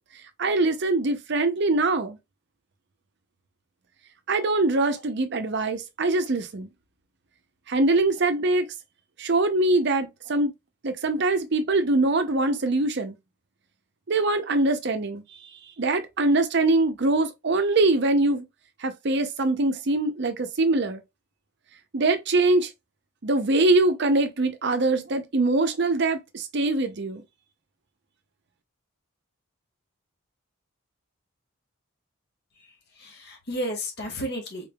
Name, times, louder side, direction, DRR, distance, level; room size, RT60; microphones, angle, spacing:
voice 1, 0.4-2.2 4.3-6.7 7.7-8.7 9.2-10.5 10.8-13.1 14.1-15.4 15.8-18.5 18.8-21.0 21.9-22.7 23.2-27.2, right 2 dB, 50° right, 0.6 m, -23 dB
voice 2, 32.6-34.7, equal, 50° left, 1.4 m, -33 dB
3.8 x 3.4 x 2.3 m
head